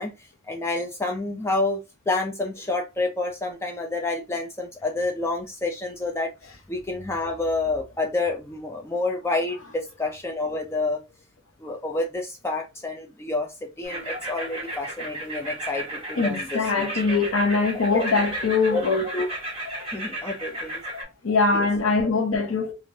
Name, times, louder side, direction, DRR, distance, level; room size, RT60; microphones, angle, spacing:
voice 1, 0.0-6.3 6.7-11.0 11.6-17.2 17.9-18.0 18.7-18.8 19.1-19.3 19.9-20.8 21.5-21.7, left 2 dB, 15° left, 0.3 m, -29 dB
sound 1, 13.8-21.0, right 1 dB, 25° right, 1.2 m, -34 dB
voice 2, 16.2-19.1 19.7-19.9 21.2-22.7, left 4 dB, 85° left, 0.7 m, -23 dB
3.1 x 2.4 x 2.6 m
head